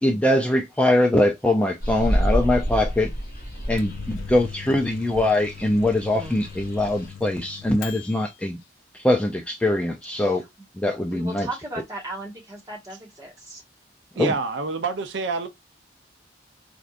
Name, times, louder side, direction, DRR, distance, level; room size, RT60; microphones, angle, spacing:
voice 1, 0.0-3.1 3.7-8.6 8.9-10.4 10.8-11.5 14.2-14.3, left 1 dB, 5° left, 0.3 m, -22 dB
sound 1, 1.8-7.1, equal, 50° left, 1.8 m, -29 dB
Microwave oven, 3.5-8.3, left 8 dB, 70° left, 0.4 m, -40 dB
voice 2, 10.1-10.4 11.0-13.6, right 2 dB, 20° right, 1.4 m, -37 dB
voice 3, 14.2-15.5, right 4 dB, 65° right, 0.5 m, -27 dB
4.4 x 2.5 x 2.4 m
head